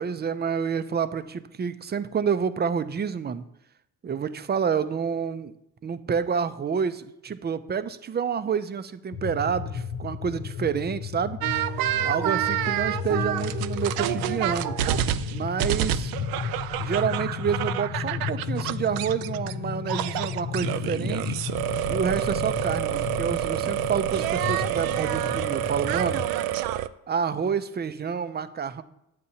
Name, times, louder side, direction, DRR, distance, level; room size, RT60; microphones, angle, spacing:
voice 1, 0.0-3.4 4.0-5.5 5.8-11.4 12.0-14.8 15.3-16.1 16.8-21.4 21.9-26.2 27.1-28.8, right 6 dB, 25° right, 12 dB, 0.6 m, -28 dB
sound 1, 9.1-26.3, left 7 dB, 55° left, 0.7 m, -33 dB
sound 2, 11.4-19.5 19.9-26.9, right 12 dB, 75° right, 0.5 m, -28 dB
11.0 x 7.5 x 2.8 m, 0.83 s
supercardioid pair, 70°, 36 cm